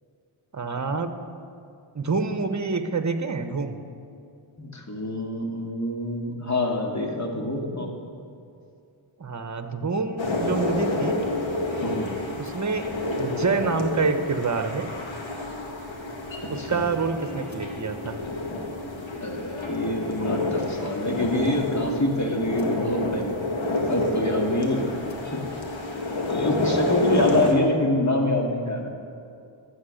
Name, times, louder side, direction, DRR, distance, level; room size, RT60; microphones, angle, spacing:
voice 1, 0.5-1.1 1.9-3.8 9.2-11.2 12.4-14.9 16.5-18.2, right 4 dB, 35° right, 8 dB, 1.1 m, -27 dB
voice 2, 4.6-7.9 11.8-12.1 16.4-16.8 19.2-23.4 23.9-24.9 25.3-25.4 26.3-28.9, left 1 dB, 35° left, 1 dB, 2.0 m, -26 dB
sound 1, 10.2-27.5, left 2 dB, 65° left, 1.9 m, -29 dB
12.5 x 9.0 x 6.5 m, 2.5 s
cardioid pair, 55°, 49 cm